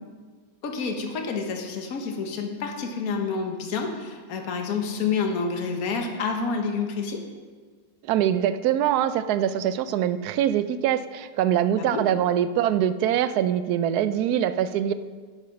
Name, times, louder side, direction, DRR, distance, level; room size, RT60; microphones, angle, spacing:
voice 1, 0.6-7.2 11.8-12.0, left 5 dB, 55° left, 3 dB, 1.5 m, -28 dB
voice 2, 8.0-14.9, right 10 dB, 70° right, 13 dB, 1.0 m, -23 dB
10.0 x 8.2 x 5.7 m, 1.5 s
omnidirectional pair, 1.9 m